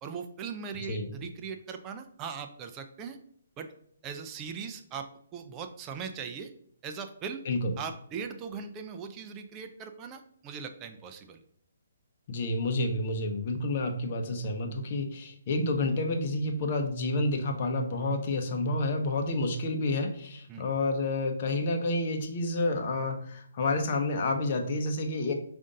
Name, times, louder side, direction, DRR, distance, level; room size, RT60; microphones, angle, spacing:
voice 1, 0.0-3.2 3.6-3.7 4.0-6.5 6.8-7.4 7.8-11.4 20.5-20.6, right 6 dB, 20° right, 6 dB, 0.4 m, -39 dB
voice 2, 12.3-25.3, left 2 dB, 45° left, 4 dB, 0.8 m, -29 dB
5.0 x 2.6 x 3.8 m, 0.65 s
hypercardioid pair, 145°, 0 cm